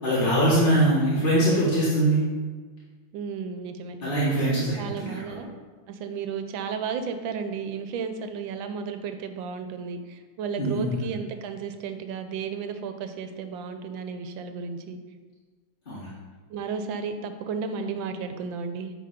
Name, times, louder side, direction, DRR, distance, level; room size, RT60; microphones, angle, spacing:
voice 1, 0.0-2.2 4.0-5.4 10.6-10.9 15.9-16.1, right 1 dB, 30° left, -9 dB, 1.3 m, -22 dB
voice 2, 3.1-4.0 4.8-5.5 5.9-15.0 16.5-18.9, right 5 dB, 75° right, 8 dB, 1.3 m, -33 dB
9.4 x 3.6 x 5.0 m, 1.4 s
omnidirectional pair, 2.3 m